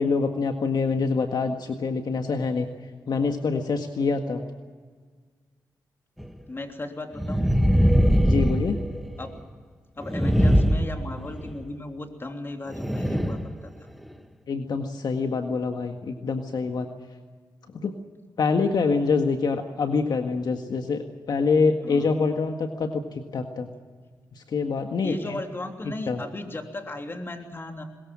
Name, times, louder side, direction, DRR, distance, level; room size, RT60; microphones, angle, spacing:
voice 1, 0.0-2.7 3.1-4.4 8.2-8.8 14.5-16.9 17.7-17.9 18.4-23.7 24.3-25.4 26.1-26.2, left 4 dB, 65° left, 5 dB, 1.7 m, -25 dB
sound 1, 6.2-6.3 7.1-9.3 10.0-11.6 12.7-13.5 14.1-14.2, equal, ahead, 1.5 m, -21 dB
voice 2, 6.5-7.5 9.2-9.3 10.0-13.9 21.8-22.1 25.0-27.8, left 2 dB, 30° left, 4 dB, 3.2 m, -36 dB
21.5 x 21.0 x 7.5 m, 1.5 s
cardioid pair, 70°, 8 cm